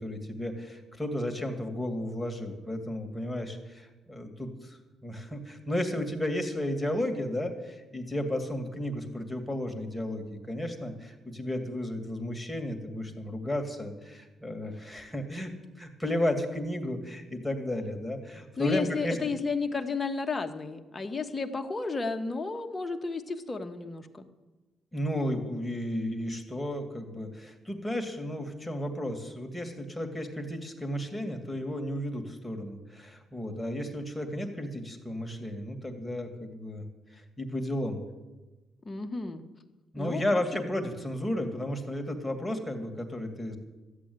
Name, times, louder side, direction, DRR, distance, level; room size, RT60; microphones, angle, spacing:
voice 1, 0.0-15.5 15.8-19.2 24.9-36.8 37.1-38.0 39.9-43.6, left 1 dB, 5° left, 3 dB, 2.3 m, -33 dB
voice 2, 18.6-24.3 38.8-39.4 40.0-40.2, left 4 dB, 25° left, 5 dB, 1.4 m, -32 dB
13.5 x 8.7 x 9.6 m, 1.2 s
cardioid pair, 90°, 0 cm